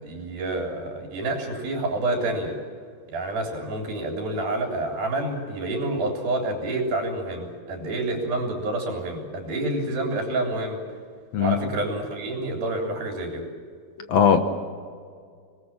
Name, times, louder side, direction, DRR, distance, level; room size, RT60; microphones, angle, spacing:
voice 1, 0.0-2.6 3.1-10.8 11.4-13.5, right 2 dB, 80° right, 2 dB, 5.1 m, -28 dB
voice 2, 14.0-14.4, left 7 dB, 60° left, 7 dB, 2.1 m, -19 dB
26.0 x 20.0 x 7.4 m, 2.1 s
omnidirectional pair, 4.1 m